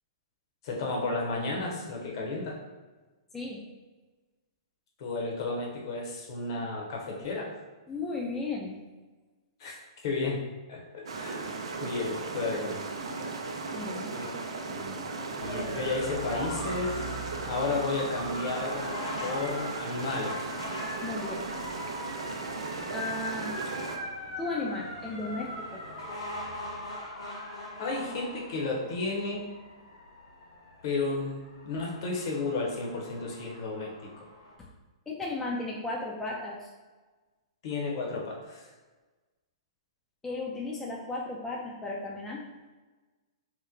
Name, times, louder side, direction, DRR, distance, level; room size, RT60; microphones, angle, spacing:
voice 1, 0.6-2.6 5.0-7.5 9.6-9.7 10.0-10.4 10.7-11.4 11.8-12.8 14.1-14.3 14.7-15.1 15.4-18.8 19.2-20.5 27.8-29.5 30.8-34.2 37.6-38.6, left 3 dB, 55° left, -1 dB, 0.8 m, -33 dB
voice 2, 7.9-8.8 13.7-14.1 21.0-21.4 22.9-23.6 24.4-25.8 34.6-34.7 35.1-36.7 40.2-42.4, left 2 dB, 10° left, -3 dB, 0.4 m, -35 dB
sound 1, 11.1-24.0, right 3 dB, 80° right, 0.5 m, -36 dB
sound 2, 15.4-34.5, left 1 dB, 80° left, 1.1 m, -41 dB
2.9 x 2.1 x 3.8 m, 1.3 s
hypercardioid pair, 135°, 3 cm